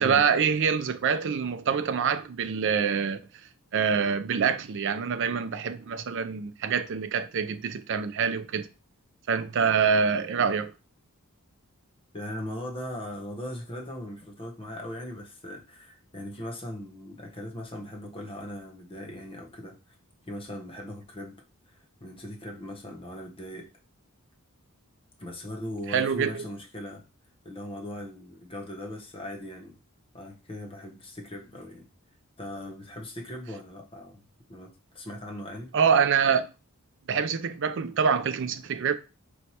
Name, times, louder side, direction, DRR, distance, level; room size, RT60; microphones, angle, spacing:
voice 1, 0.0-3.2 3.7-8.7 9.3-10.7 25.9-26.5 35.7-36.5 37.1-38.9, right 6 dB, 55° right, 0.4 m, -25 dB
voice 2, 12.1-19.8 20.3-21.3 21.7-23.7 25.2-27.0 27.4-29.8 30.1-31.9 32.4-34.2 34.5-35.7, left 1 dB, 25° left, 0.9 m, -39 dB
4.4 x 3.1 x 2.8 m
head